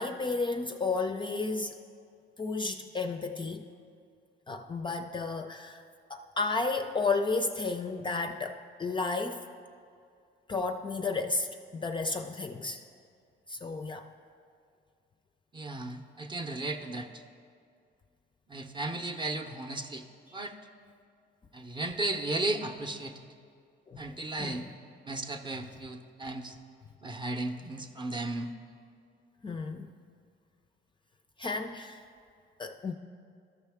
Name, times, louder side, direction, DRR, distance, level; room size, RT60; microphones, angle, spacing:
voice 1, 0.0-1.8 2.4-3.7 4.5-5.8 6.1-9.4 10.5-12.8 13.5-14.1 23.9-24.7 29.4-29.9 31.4-32.0 32.6-32.9, left 3 dB, 25° left, 6 dB, 0.4 m, -32 dB
voice 2, 15.5-17.2 18.5-20.1 20.3-20.6 21.5-23.3 24.0-24.6 25.1-26.6 27.0-28.5, right 2 dB, 25° right, 4 dB, 0.6 m, -35 dB
13.0 x 5.6 x 3.5 m, 2.3 s
cardioid pair, 90°, 20 cm